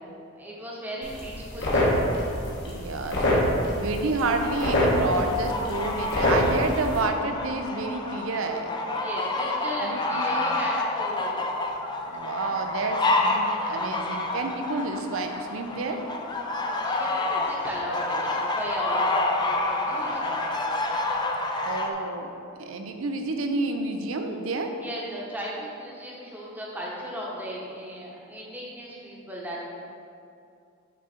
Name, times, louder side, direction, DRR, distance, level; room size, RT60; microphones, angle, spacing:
voice 1, 0.3-2.0 9.0-11.4 16.6-20.6 24.8-29.6, equal, 10° right, -4 dB, 0.9 m, -36 dB
sound 1, 1.0-7.0, left 1 dB, 60° left, 1.3 m, -26 dB
voice 2, 2.7-3.4 3.7-8.7 9.8-10.3 12.1-16.0 21.7-22.3 22.6-24.8, right 2 dB, 70° right, 5 dB, 0.5 m, -29 dB
sound 2, 4.4-21.9, left 2 dB, 20° left, 0.4 m, -29 dB
6.0 x 3.8 x 4.2 m, 2.5 s
head